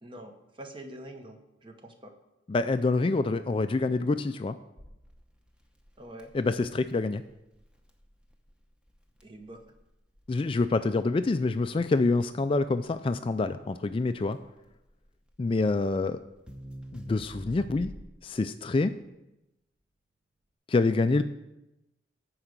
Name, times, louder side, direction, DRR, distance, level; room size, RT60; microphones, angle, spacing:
voice 1, 0.0-2.1 6.0-6.3 9.2-9.7, right 1 dB, 25° right, 5 dB, 1.0 m, -45 dB
voice 2, 2.5-4.6 6.3-7.2 10.3-14.4 15.4-16.2 16.9-17.9 18.2-18.9 20.7-21.2, left 3 dB, 30° left, 10 dB, 0.3 m, -26 dB
Crackle, 4.8-18.3, equal, 5° right, 0.8 m, -49 dB
11.5 x 4.8 x 6.7 m, 0.93 s
head